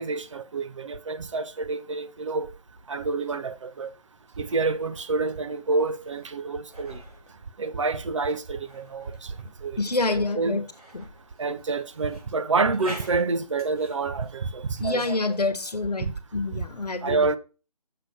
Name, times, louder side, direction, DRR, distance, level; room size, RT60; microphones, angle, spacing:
voice 1, 0.0-2.5 2.9-3.9 4.4-7.0 7.6-9.3 9.6-9.8 10.1-10.6 11.4-15.4 16.0-16.1 17.0-17.4, right 3 dB, 50° right, 0.7 m, -28 dB
sound 1, 2.7-15.5, right 1 dB, 70° right, 3.5 m, -48 dB
voice 2, 9.8-10.6 10.9-11.0 14.8-17.3, left 3 dB, 75° left, 1.1 m, -27 dB
6.6 x 5.5 x 4.9 m
figure-of-eight pair, 150°, 20 cm